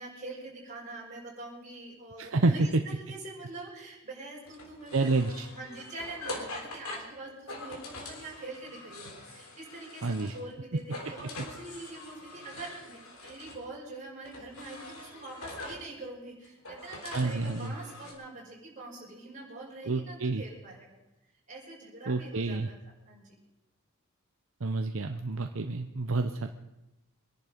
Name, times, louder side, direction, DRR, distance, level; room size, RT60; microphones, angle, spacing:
voice 1, 0.0-5.1 5.5-21.0 21.5-22.8 23.1-23.4, right 2 dB, 35° right, -3 dB, 5.4 m, -44 dB
voice 2, 2.2-2.5 4.9-5.5 10.0-10.3 17.1-17.8 19.8-20.4 22.1-22.7 24.6-26.5, right 3 dB, 65° right, 6 dB, 0.8 m, -29 dB
sound 1, 4.5-10.5 10.8-13.6 14.2-15.9 16.4-18.1, left 2 dB, 75° left, 3.4 m, -44 dB
24.0 x 11.0 x 5.1 m, 0.96 s
head